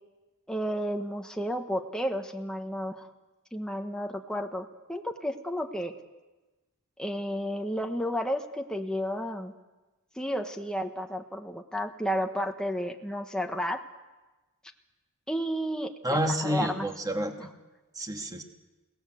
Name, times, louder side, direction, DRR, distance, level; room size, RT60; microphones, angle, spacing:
voice 1, 0.5-3.1 3.5-5.9 7.0-9.5 10.1-13.8 15.3-16.9 17.4-17.5, equal, 5° left, 4 dB, 1.2 m, -32 dB
voice 2, 16.0-17.3 18.0-18.4, equal, 15° right, 4 dB, 2.2 m, -29 dB
29.5 x 18.5 x 7.9 m, 1.2 s
head